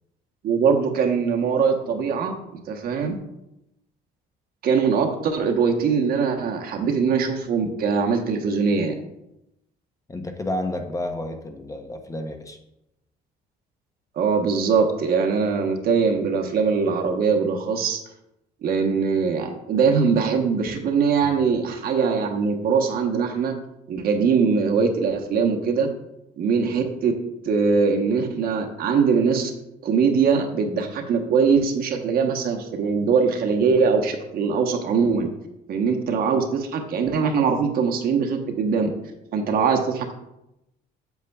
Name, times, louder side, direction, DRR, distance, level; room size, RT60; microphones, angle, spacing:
voice 1, 0.4-2.3 2.7-3.2 4.6-8.9 14.2-18.0 18.6-23.5 23.9-25.9 26.4-27.1 27.4-29.5 29.8-35.3 35.7-38.9 39.3-40.1, right 5 dB, 60° right, 4 dB, 1.1 m, -22 dB
voice 2, 10.1-12.6 21.2-21.3, left 1 dB, 20° left, 5 dB, 0.8 m, -30 dB
8.1 x 7.3 x 2.3 m, 0.87 s
cardioid pair, 110°, 17 cm